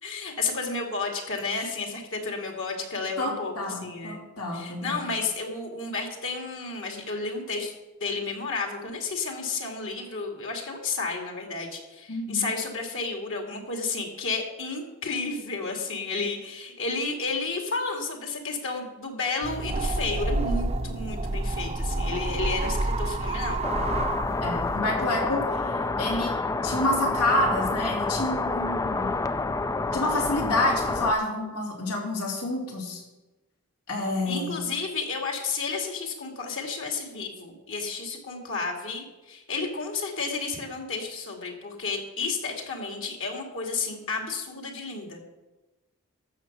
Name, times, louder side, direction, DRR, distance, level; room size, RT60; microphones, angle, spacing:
voice 1, 0.0-4.2 4.5-23.6 34.3-45.2, left 4 dB, 60° left, 1 dB, 2.3 m, -32 dB
voice 2, 3.2-5.1 12.1-12.5 24.4-26.3 26.6-29.1 29.9-33.0 33.9-34.5, left 1 dB, 90° left, -2 dB, 3.2 m, -28 dB
sound 1, 19.4-24.8, right 2 dB, 30° right, 0.7 m, -29 dB
sound 2, 23.6-31.1, left 3 dB, 15° left, 0.3 m, -28 dB
14.0 x 6.7 x 6.0 m, 1.1 s
head